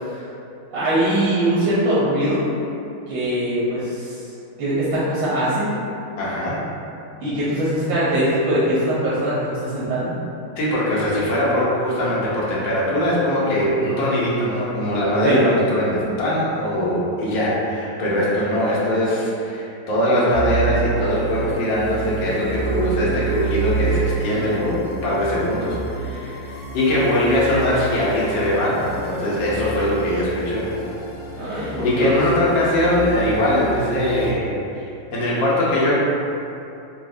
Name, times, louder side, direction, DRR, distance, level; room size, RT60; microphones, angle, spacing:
voice 1, 0.7-2.4 3.1-4.2 4.6-5.7 7.2-10.2 15.2-15.4 31.4-32.1, right 1 dB, 85° right, -10 dB, 1.4 m, -21 dB
voice 2, 6.2-6.6 10.6-30.7 31.3-36.0, equal, 85° left, -7 dB, 1.5 m, -21 dB
sound 1, 20.3-34.3, right 4 dB, 60° left, 0.8 m, -29 dB
4.5 x 2.0 x 2.5 m, 2.7 s
omnidirectional pair, 2.0 m